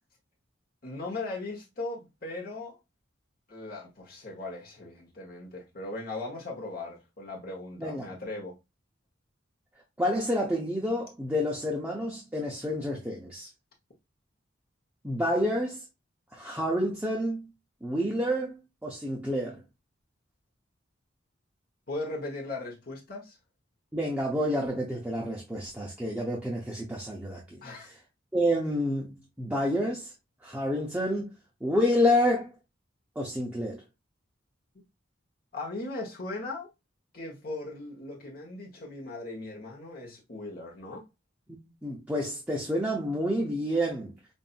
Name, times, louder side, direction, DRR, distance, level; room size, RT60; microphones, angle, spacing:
voice 1, 0.8-2.8 3.5-8.6 21.9-23.4 27.6-27.9 35.5-36.7 37.1-41.0, left 2 dB, 45° left, 1.1 m, -38 dB
voice 2, 10.0-13.5 15.0-15.8 16.3-17.5 17.8-19.6 23.9-27.6 28.3-30.1 30.4-31.3 31.6-32.5 33.2-33.8 41.8-44.1, equal, 10° right, 0.6 m, -29 dB
5.3 x 2.6 x 2.5 m
head